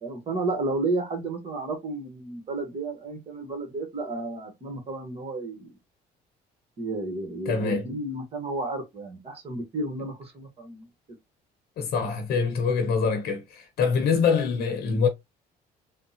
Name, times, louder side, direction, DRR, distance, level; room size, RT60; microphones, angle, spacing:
voice 1, 0.0-5.7 6.8-10.9, right 2 dB, 35° right, 1.1 m, -32 dB
voice 2, 7.5-7.9 11.8-15.1, left 5 dB, 70° left, 0.8 m, -24 dB
3.5 x 2.1 x 2.7 m
cardioid pair, 110°, 17 cm